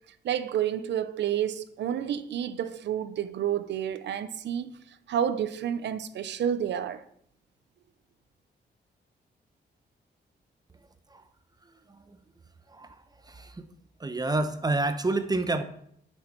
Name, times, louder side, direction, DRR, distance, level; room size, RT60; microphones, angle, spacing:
voice 1, 0.2-4.8 5.1-7.0, right 9 dB, 85° right, 0.8 m, -30 dB
voice 2, 13.3-13.7 14.0-15.6, right 2 dB, 20° right, 1.0 m, -29 dB
10.5 x 6.5 x 6.1 m
cardioid pair, 110°, 18 cm